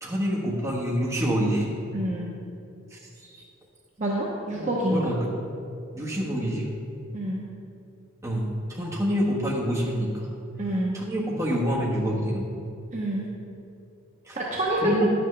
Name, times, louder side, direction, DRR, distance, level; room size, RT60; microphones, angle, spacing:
voice 1, 0.0-1.7 2.9-3.4 4.6-5.3 5.9-6.7 8.2-10.3 10.9-12.6 14.2-14.4 14.8-15.1, equal, 15° right, -5 dB, 1.3 m, -27 dB
voice 2, 1.9-2.3 4.0-5.1 7.1-7.4 10.6-11.0 12.9-13.3 14.4-14.8, right 1 dB, 35° right, -4 dB, 0.9 m, -27 dB
10.5 x 8.0 x 3.3 m, 2.6 s
head